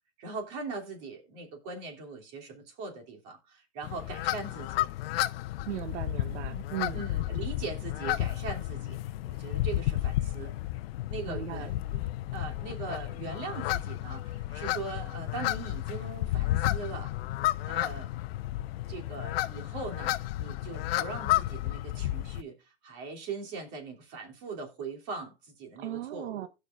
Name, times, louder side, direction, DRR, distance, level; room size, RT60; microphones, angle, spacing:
voice 1, 0.2-4.9 6.9-10.5 11.1-12.0 12.3-17.1 17.7-18.2 18.9-26.5, right 4 dB, 45° right, 3.1 m, -40 dB
sound 1, 3.8-22.4, left 15 dB, 60° left, 0.6 m, -32 dB
voice 2, 5.7-7.0 11.2-11.7 25.8-26.5, right 12 dB, 85° right, 0.8 m, -37 dB
16.5 x 5.9 x 2.5 m
hypercardioid pair, 140°, 34 cm